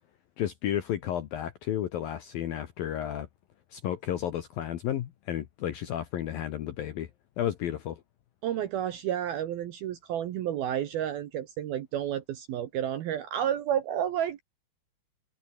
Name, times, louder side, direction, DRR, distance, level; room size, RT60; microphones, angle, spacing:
voice 1, 0.4-3.3 3.7-7.1 7.4-8.0, left 11 dB, 65° left, 2.4 m, -32 dB
voice 2, 8.4-14.4, right 10 dB, 70° right, 2.5 m, -31 dB
omnidirectional pair, 5.8 m